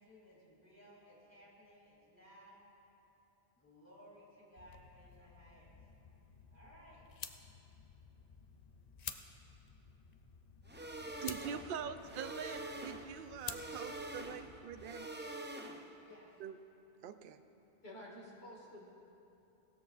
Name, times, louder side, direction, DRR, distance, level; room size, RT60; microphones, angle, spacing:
voice 1, 0.0-2.6 3.6-5.8 6.5-7.0 10.8-11.8 16.0-16.4, equal, 15° left, -6 dB, 2.9 m, -60 dB
sound 1, 4.6-14.9, left 7 dB, 50° left, 0.6 m, -52 dB
sound 2, 10.7-16.1, right 1 dB, 15° right, 0.4 m, -46 dB
voice 2, 11.2-15.1 16.4-16.6 17.0-17.4, right 8 dB, 65° right, 10 dB, 0.7 m, -44 dB
voice 3, 17.8-18.9, equal, 80° left, -3 dB, 2.4 m, -51 dB
16.5 x 13.5 x 2.5 m, 2.8 s
omnidirectional pair, 1.0 m